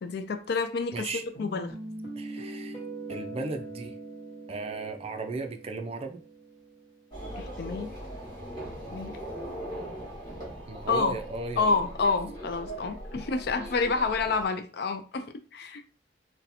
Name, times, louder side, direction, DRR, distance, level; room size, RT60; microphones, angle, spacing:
voice 1, 0.0-1.1 1.4-1.7 7.4-8.1 8.9-9.2 10.9-11.2 11.6-15.8, left 4 dB, 60° left, 0.4 m, -29 dB
voice 2, 0.9-1.2 2.1-2.8 3.1-3.9 4.5-6.2 10.7-11.8, right 3 dB, 35° right, 0.4 m, -36 dB
sound 1, 1.3-7.0, right 2 dB, 40° left, 1.1 m, -42 dB
sound 2, 7.1-14.5, right 1 dB, 20° left, 1.2 m, -40 dB
2.7 x 2.2 x 4.0 m
head